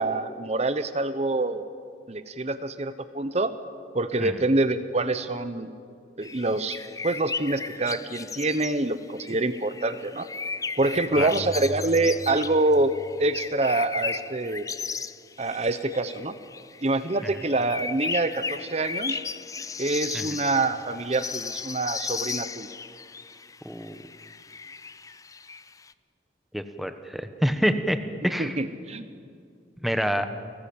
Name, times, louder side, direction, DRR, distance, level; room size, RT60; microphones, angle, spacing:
voice 1, 0.0-1.6 2.1-3.5 3.9-5.7 6.2-6.8 7.0-10.3 10.8-12.9 13.2-14.7 15.4-16.3 16.8-19.2 19.8-22.7 28.4-29.1, right 2 dB, 35° right, 11 dB, 0.9 m, -26 dB
sound 1, 6.2-25.9, left 5 dB, 20° left, 0.5 m, -36 dB
sound 2, 11.1-13.8, equal, 60° right, 3.2 m, -41 dB
voice 2, 26.5-28.0 28.2-28.6 29.8-30.3, equal, ahead, 8 dB, 1.1 m, -27 dB
29.0 x 19.0 x 8.6 m, 2.3 s
head